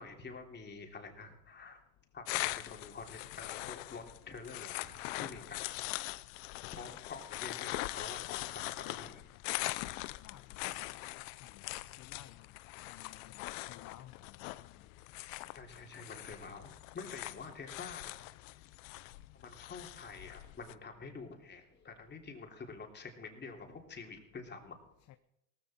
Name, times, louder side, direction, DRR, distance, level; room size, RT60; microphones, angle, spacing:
voice 1, 0.0-1.8 2.1-5.8 6.7-9.2 15.5-18.1 19.3-24.8, left 4 dB, 25° left, 3 dB, 3.2 m, -48 dB
sound 1, 2.3-20.7, left 20 dB, 75° left, 0.7 m, -42 dB
voice 2, 10.1-10.9 11.4-11.7 12.0-12.5 12.8-14.7 17.2-17.6 25.1-25.2, left 13 dB, 45° left, 11 dB, 0.8 m, -56 dB
18.0 x 14.0 x 4.4 m, 0.82 s
supercardioid pair, 110°, 39 cm